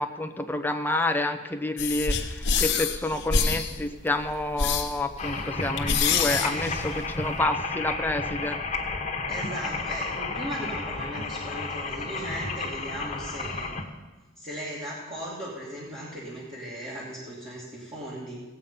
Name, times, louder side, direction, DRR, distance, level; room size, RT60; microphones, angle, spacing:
voice 1, 0.0-8.6, left 2 dB, 10° left, 5 dB, 0.8 m, -29 dB
sound 1, 1.8-7.4, left 5 dB, 60° left, 1.1 m, -27 dB
sound 2, 5.2-13.8, left 3 dB, 35° left, 1.4 m, -32 dB
voice 2, 6.2-6.9 9.3-13.7 14.4-18.4, equal, 30° right, -7 dB, 2.4 m, -37 dB
17.0 x 8.3 x 5.6 m, 1.2 s
head